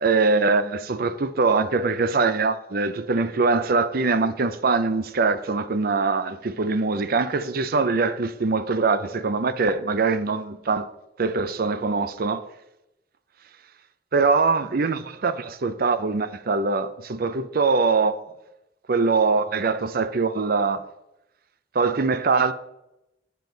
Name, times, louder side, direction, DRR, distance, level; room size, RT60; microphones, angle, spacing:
voice 1, 0.0-10.9 11.2-12.4 14.1-18.1 18.9-20.8 21.7-22.5, right 4 dB, 55° right, 0.6 m, -23 dB
7.7 x 7.0 x 3.9 m
head